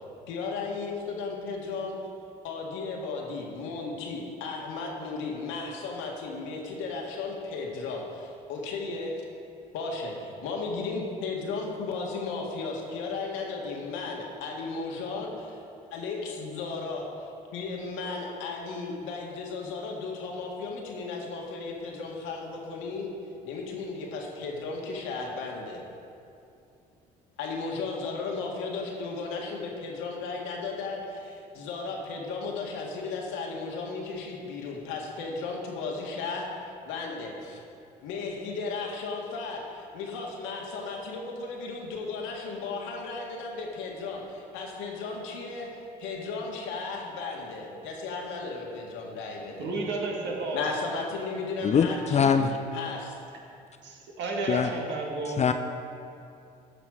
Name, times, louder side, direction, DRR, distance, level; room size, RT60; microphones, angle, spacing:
voice 1, 0.3-2.0 2.4-9.2 9.7-15.6 15.9-23.1 23.4-25.8 27.4-37.6 38.0-49.7 50.5-52.4 52.7-53.1, left 4 dB, 70° left, 0 dB, 1.7 m, -35 dB
voice 2, 49.6-50.6 53.8-55.4, right 3 dB, 60° right, -1 dB, 2.0 m, -32 dB
voice 3, 51.6-52.6 54.5-54.7 55.4-55.5, left 6 dB, 35° left, 7 dB, 0.5 m, -23 dB
13.5 x 6.0 x 4.8 m, 2.6 s
hypercardioid pair, 60°, 21 cm